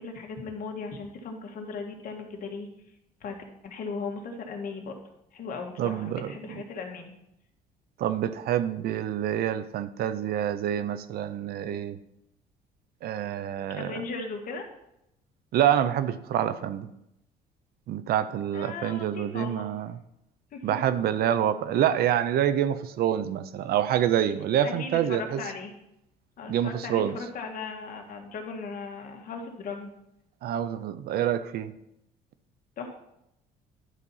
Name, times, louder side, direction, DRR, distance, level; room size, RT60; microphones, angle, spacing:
voice 1, 0.0-2.7 3.2-3.3 3.6-4.9 5.3-7.1 13.7-14.7 18.5-19.7 20.5-20.7 24.6-25.7 26.4-29.9 32.8-32.9, left 4 dB, 55° left, 3 dB, 1.7 m, -37 dB
voice 2, 5.8-6.6 8.0-12.0 13.0-14.0 15.5-16.9 17.9-19.9 20.6-25.4 26.5-27.2 30.4-31.7, right 10 dB, 65° right, 13 dB, 0.6 m, -27 dB
11.0 x 4.1 x 5.6 m, 0.83 s
cardioid pair, 110°, 17 cm